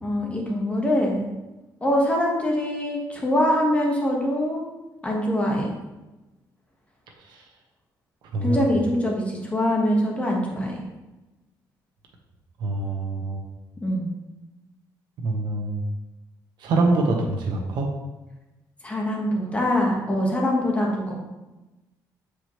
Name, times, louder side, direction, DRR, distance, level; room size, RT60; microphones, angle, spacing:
voice 1, 0.0-1.3 1.8-4.6 5.0-5.7 8.4-10.8 13.8-14.1 18.8-21.2, left 1 dB, 15° left, -1 dB, 1.5 m, -23 dB
voice 2, 8.3-8.7 12.6-13.4 15.2-15.8 16.6-17.9, right 2 dB, 80° right, 1 dB, 1.2 m, -25 dB
7.6 x 4.9 x 3.2 m, 1.1 s
cardioid pair, 110°, 8 cm